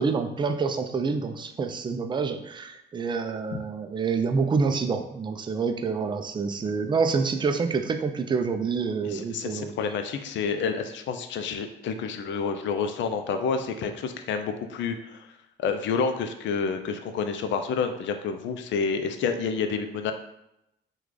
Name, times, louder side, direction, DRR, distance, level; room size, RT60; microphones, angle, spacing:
voice 1, 0.0-9.7, right 5 dB, 25° right, 6 dB, 0.3 m, -27 dB
voice 2, 9.0-15.3 15.6-20.1, left 5 dB, 70° left, 7 dB, 0.4 m, -29 dB
3.1 x 2.3 x 3.8 m, 0.83 s
cardioid pair, 90°, 20 cm